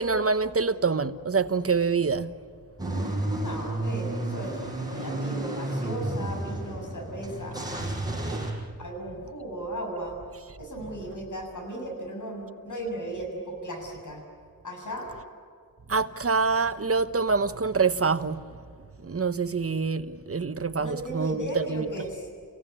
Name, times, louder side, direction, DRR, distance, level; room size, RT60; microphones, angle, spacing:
voice 1, 0.0-2.3 15.9-18.4 19.0-21.9, right 4 dB, 40° right, 1.1 m, -26 dB
Car / Engine starting / Idling, 2.8-8.5, right 2 dB, 10° right, 6.3 m, -31 dB
voice 2, 3.4-4.6 4.9-7.6 8.2-8.4 8.8-10.2 10.6-14.2 14.6-15.1 20.8-22.3, right 1 dB, 55° left, 7.4 m, -36 dB
30.0 x 17.0 x 9.9 m
wide cardioid pair, 85°, 36 cm